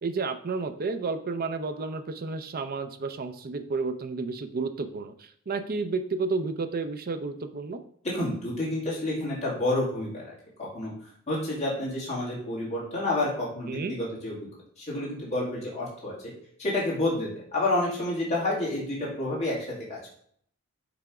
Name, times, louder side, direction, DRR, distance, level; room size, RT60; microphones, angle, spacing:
voice 1, 0.0-7.8 13.7-14.0, right 4 dB, 45° right, 9 dB, 0.5 m, -31 dB
voice 2, 8.1-10.3 10.6-10.9 11.3-14.3 14.8-16.1 16.6-20.0, left 2 dB, 30° left, -6 dB, 2.2 m, -29 dB
6.9 x 3.5 x 4.8 m, 0.63 s
head